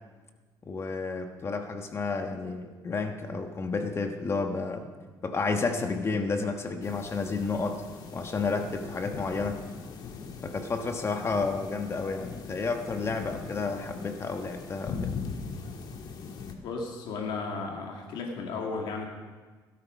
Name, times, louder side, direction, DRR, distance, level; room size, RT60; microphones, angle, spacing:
voice 1, 0.6-4.9 5.2-7.8 8.1-9.7 10.4-15.1, left 4 dB, 30° left, 5 dB, 1.2 m, -31 dB
sound 1, 6.8-16.5, left 5 dB, 60° left, 1.7 m, -40 dB
voice 2, 16.6-19.1, left 4 dB, 75° left, 0 dB, 2.3 m, -34 dB
16.5 x 12.5 x 5.2 m, 1.4 s
cardioid pair, 110°, 8 cm